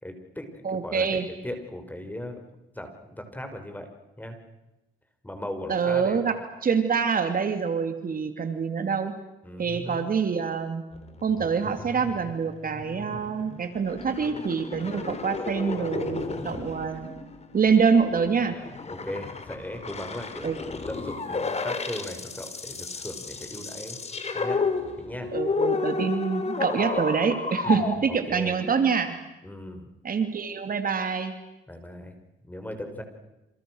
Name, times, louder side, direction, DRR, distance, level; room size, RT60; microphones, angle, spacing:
voice 1, 0.0-1.2 1.4-2.4 2.7-3.9 4.2-4.4 5.2-6.2 9.4-10.1 18.9-20.6 20.9-24.0 24.3-24.6 25.0-25.3 27.6-28.6 29.4-29.9 31.7-32.1 32.4-33.0, left 1 dB, 10° left, 6 dB, 5.9 m, -38 dB
voice 2, 0.6-1.3 5.7-6.4 6.6-9.1 9.6-10.8 11.2-17.1 17.5-18.6 20.4-20.6 25.3-29.2 30.0-31.3, right 6 dB, 45° right, 7 dB, 2.8 m, -25 dB
sound 1, 10.9-28.0, left 4 dB, 35° left, 4.1 m, -32 dB
29.0 x 28.0 x 6.5 m, 0.96 s
cardioid pair, 90°, 20 cm